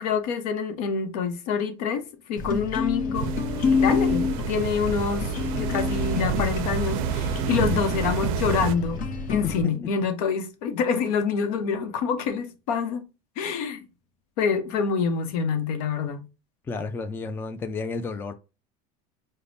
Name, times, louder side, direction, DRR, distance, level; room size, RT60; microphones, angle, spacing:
voice 1, 0.0-2.0 2.3-3.3 3.8-5.3 5.6-9.0 9.3-13.0 13.4-13.9 14.4-16.2, left 6 dB, 75° left, 0.8 m, -26 dB
sound 1, 2.4-9.6, left 4 dB, 45° left, 0.8 m, -28 dB
sound 2, 3.1-8.7, right 8 dB, 70° right, 0.4 m, -29 dB
voice 2, 16.7-18.3, left 4 dB, 10° left, 0.3 m, -31 dB
5.0 x 2.1 x 2.5 m
supercardioid pair, 130°, 19 cm